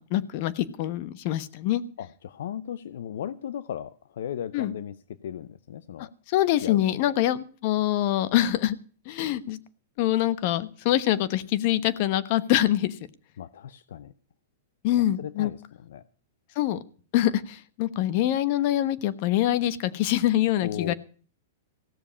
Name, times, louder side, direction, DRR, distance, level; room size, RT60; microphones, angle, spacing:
voice 1, 0.0-1.8 4.5-4.7 6.0-8.7 9.1-9.6 10.0-13.0 14.8-15.5 16.5-16.8 17.1-20.9, left 13 dB, 50° left, 15 dB, 1.1 m, -25 dB
voice 2, 2.0-5.0 5.2-6.1 6.6-7.1 13.4-14.1 15.0-16.0 20.6-20.9, left 9 dB, 75° left, 16 dB, 0.7 m, -36 dB
16.5 x 7.2 x 8.5 m, 0.41 s
hypercardioid pair, 130°, 0 cm